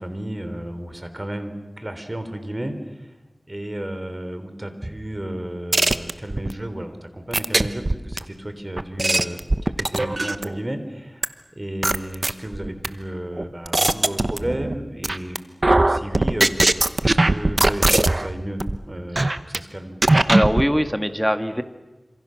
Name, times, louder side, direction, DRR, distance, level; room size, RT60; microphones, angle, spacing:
voice 1, 0.0-3.1 3.5-15.4 15.8-16.5 17.0-20.0, right 1 dB, 30° right, 8 dB, 3.5 m, -33 dB
sound 1, 5.7-6.5 7.3-8.2 8.8-10.6 11.2-11.3 11.8-12.9 13.4-14.8 15.0-15.4 15.6-18.3 18.6-18.8 19.2-19.6 20.0-20.7, right 2 dB, 45° right, 1.0 m, -19 dB
voice 2, 20.3-21.6, equal, ahead, 8 dB, 1.8 m, -21 dB
27.5 x 26.5 x 6.5 m, 1.1 s
wide cardioid pair, 55°, 0 cm